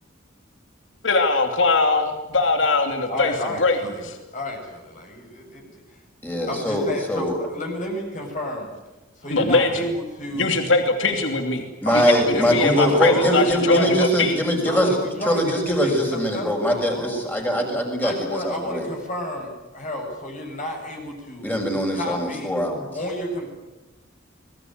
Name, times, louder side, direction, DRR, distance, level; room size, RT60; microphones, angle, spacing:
voice 1, 1.0-3.8 4.0-4.2 9.3-9.9 10.3-11.7 11.9-14.3, left 3 dB, 70° left, 6 dB, 2.8 m, -21 dB
voice 2, 3.1-6.0 6.5-8.7 9.2-10.6 11.9-13.9 14.6-15.4 15.8-17.3 18.0-21.5 21.9-22.5 22.9-23.5, left 1 dB, 40° left, 1 dB, 7.2 m, -31 dB
voice 3, 6.2-7.4 11.8-18.9 21.4-22.9, equal, 10° left, 2 dB, 6.3 m, -22 dB
25.5 x 21.5 x 9.3 m, 1.1 s
head